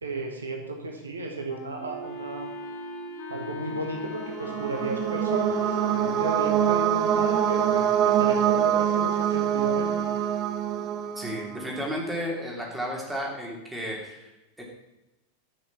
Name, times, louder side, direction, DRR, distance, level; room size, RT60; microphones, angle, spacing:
voice 1, 0.0-2.5 3.3-9.9, right 3 dB, 75° right, 2 dB, 1.6 m, -34 dB
Wind instrument woodwind instrument, 1.5-6.4, left 6 dB, 45° left, 1.3 m, -41 dB
Wind instrument woodwind instrument 2, 1.8-11.0, right 1 dB, 55° right, 3.9 m, -42 dB
sound 1, 4.0-11.8, right 9 dB, 35° right, 0.8 m, -25 dB
voice 2, 11.2-14.3 14.6-14.7, equal, 5° right, -2 dB, 3.0 m, -33 dB
11.0 x 6.3 x 5.9 m, 1.0 s
figure-of-eight pair, 90°, 0 cm